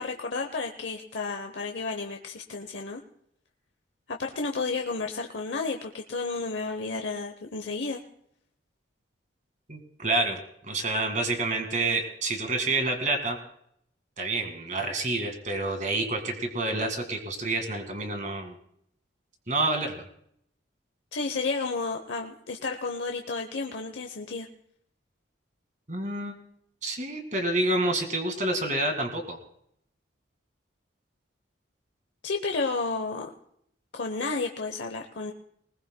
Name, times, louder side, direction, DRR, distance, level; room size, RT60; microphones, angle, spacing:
voice 1, 0.0-3.0 4.1-8.0 21.1-24.5 32.2-33.3 33.9-35.3, left 4 dB, 65° left, 4 dB, 0.8 m, -32 dB
voice 2, 9.7-13.4 14.2-18.6 19.5-19.9 25.9-26.3 26.8-29.4, right 2 dB, 40° right, 5 dB, 1.9 m, -28 dB
20.5 x 20.0 x 2.2 m, 0.71 s
head